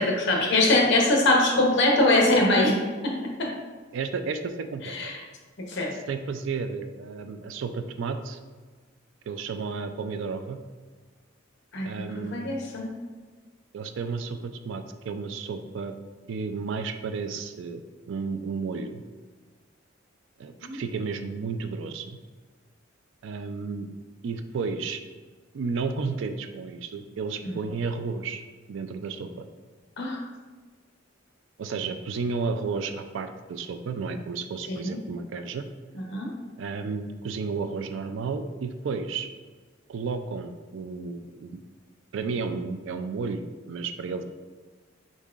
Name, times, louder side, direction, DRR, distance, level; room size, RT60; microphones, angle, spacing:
voice 1, 0.0-3.5 4.9-5.2 5.7-5.9 11.7-12.9 20.6-20.8 27.5-27.6 30.0-30.2 34.7-35.0 36.1-36.3, left 2 dB, 60° left, 0 dB, 0.9 m, -23 dB
voice 2, 3.9-5.1 5.9-8.4 9.3-10.6 11.8-12.5 13.7-15.9 16.3-19.0 20.4-22.2 23.2-23.9 24.2-25.0 25.5-28.4 28.7-29.5 31.6-35.6 36.6-39.3 39.9-41.6 42.1-44.2, right 4 dB, 65° right, 8 dB, 0.4 m, -32 dB
5.4 x 3.6 x 2.4 m, 1.4 s
head